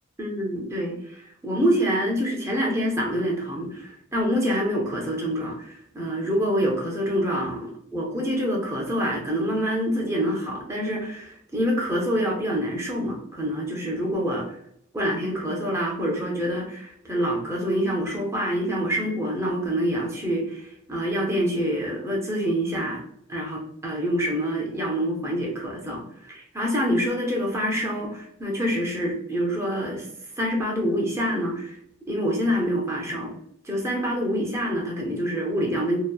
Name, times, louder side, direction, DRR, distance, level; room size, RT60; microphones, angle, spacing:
voice 1, 0.2-14.5 14.9-23.0 23.3-30.0 30.4-31.8 32.1-33.3 33.6-36.0, equal, 15° right, -2 dB, 0.6 m, -26 dB
2.8 x 2.1 x 2.2 m, 0.69 s
head